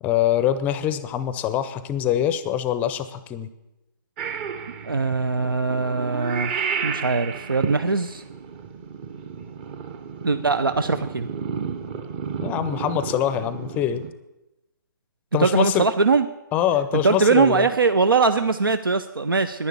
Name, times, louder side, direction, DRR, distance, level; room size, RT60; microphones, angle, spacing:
voice 1, 0.0-3.5 12.4-14.1 15.3-15.9 16.5-17.7, left 10 dB, 15° left, 13 dB, 0.5 m, -24 dB
Purr / Meow, 4.2-14.1, right 6 dB, 30° right, 0.8 m, -32 dB
voice 2, 4.8-8.2 10.2-11.3 15.4-16.2 17.0-19.7, right 4 dB, 85° right, 11 dB, 0.6 m, -21 dB
11.0 x 10.0 x 7.1 m, 0.97 s
figure-of-eight pair, 140°, 11 cm